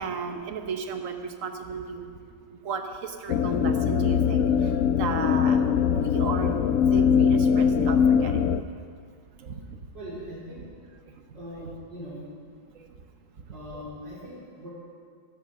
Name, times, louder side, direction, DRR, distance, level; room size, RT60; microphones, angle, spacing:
voice 1, 0.0-2.1 2.5-5.7 5.9-8.7 9.4-9.8 11.1-11.7 12.1-12.2 12.7-13.1 13.3-13.8, right 5 dB, 50° right, 6 dB, 1.3 m, -35 dB
sound 1, 3.3-8.6, left 7 dB, 85° left, 0.7 m, -22 dB
voice 2, 9.9-10.6 11.3-12.3 13.5-14.7, equal, 85° right, -7 dB, 4.7 m, -40 dB
14.5 x 10.0 x 6.3 m, 2.1 s
omnidirectional pair, 1.9 m